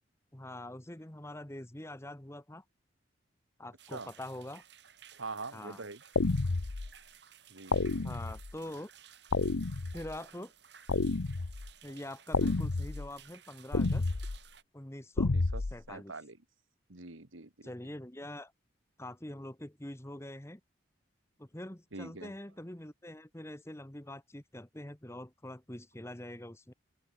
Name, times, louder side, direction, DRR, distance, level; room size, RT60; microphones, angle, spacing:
voice 1, 0.3-2.6 3.6-4.6 5.5-5.8 8.0-8.9 9.9-10.5 11.8-14.1 14.7-15.3 15.7-16.1 17.6-18.5 19.0-20.6 21.4-26.7, left 1 dB, 15° left, 1.1 m, -44 dB
sound 1, 3.8-14.6, right 9 dB, 55° right, 6.0 m, -57 dB
voice 2, 5.2-6.0 7.5-8.1 15.2-15.6 15.9-16.4 16.9-17.7 21.9-22.3, right 3 dB, 80° right, 2.1 m, -44 dB
sound 2, 6.2-6.9 7.7-8.5 9.3-10.2 10.9-11.7 12.3-13.1 13.7-14.4 15.2-15.8, left 3 dB, 90° left, 0.9 m, -30 dB
head